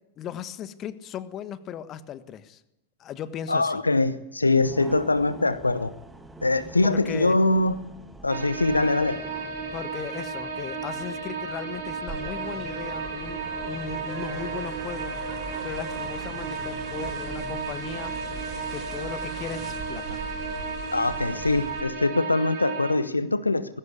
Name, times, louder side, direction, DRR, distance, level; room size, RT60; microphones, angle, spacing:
voice 1, 0.2-2.6 3.0-3.8 6.8-7.4 9.7-15.1 15.6-18.2 18.7-20.2, left 9 dB, 30° left, 14 dB, 1.4 m, -37 dB
voice 2, 3.5-5.9 6.4-7.8 8.2-9.2 20.9-23.8, left 2 dB, 80° left, 14 dB, 0.9 m, -23 dB
sound 1, 4.6-18.6, right 2 dB, 10° right, 2.0 m, -47 dB
sound 2, 8.3-22.9, right 4 dB, 55° right, 5.7 m, -34 dB
Big Ben (From Westminster Bridge), 12.1-21.8, right 5 dB, 40° right, 4.1 m, -40 dB
20.0 x 16.5 x 8.6 m, 0.91 s
figure-of-eight pair, 90°, 0 cm